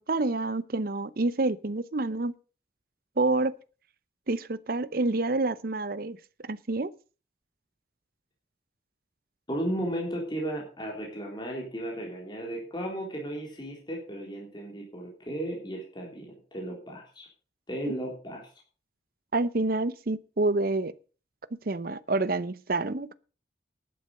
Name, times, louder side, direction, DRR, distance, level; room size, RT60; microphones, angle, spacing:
voice 1, 0.0-2.3 3.2-3.5 4.3-6.2 6.4-6.9 17.8-17.9 19.3-20.9 21.7-23.1, right 2 dB, 50° right, 0.7 m, -28 dB
voice 2, 9.5-17.3 17.7-18.5, right 1 dB, 25° left, 3.7 m, -35 dB
11.5 x 8.6 x 6.5 m
head